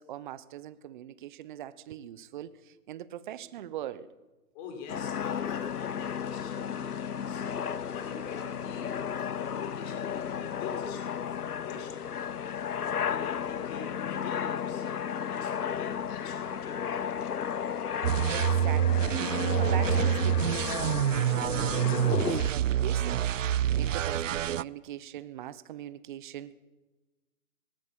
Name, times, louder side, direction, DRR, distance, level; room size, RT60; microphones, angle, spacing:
voice 1, 0.0-4.1 18.3-26.5, right 11 dB, 35° right, 16 dB, 0.9 m, -41 dB
voice 2, 4.5-7.4 7.7-17.3, left 5 dB, 30° left, 3 dB, 5.3 m, -46 dB
sound 1, 4.9-22.5, left 8 dB, 85° left, 0.8 m, -33 dB
sound 2, 18.0-24.6, right 10 dB, 60° right, 0.6 m, -27 dB
19.5 x 18.5 x 7.6 m, 1.1 s
figure-of-eight pair, 135°, 44 cm